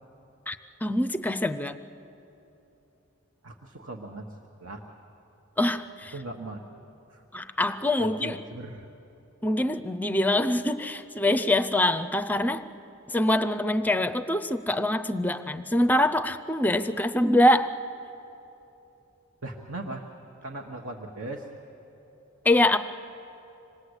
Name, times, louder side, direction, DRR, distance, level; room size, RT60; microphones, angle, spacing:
voice 1, 0.5-1.8 5.6-6.1 7.3-8.4 9.4-12.6 13.1-17.7 22.4-22.8, left 1 dB, 10° left, 11 dB, 0.5 m, -24 dB
voice 2, 3.4-4.3 4.6-4.8 6.1-6.8 7.1-7.2 8.0-8.9 19.4-20.0 20.4-21.5, right 2 dB, 65° right, 0 dB, 1.4 m, -38 dB
26.5 x 19.5 x 8.1 m, 3.0 s
head